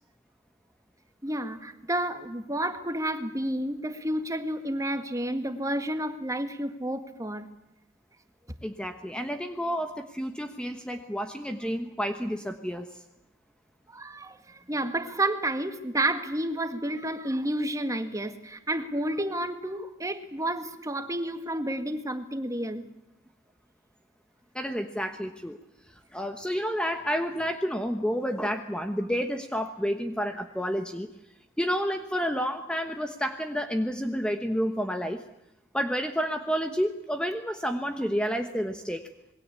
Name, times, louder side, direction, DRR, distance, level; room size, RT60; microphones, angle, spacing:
voice 1, 1.2-7.5 13.9-22.8, right 1 dB, 15° right, 8 dB, 1.9 m, -30 dB
voice 2, 8.6-12.9 24.5-25.6 25.9-31.1 31.6-35.2 35.7-39.0, equal, 5° left, 6 dB, 1.2 m, -30 dB
27.0 x 21.5 x 8.4 m, 0.87 s
head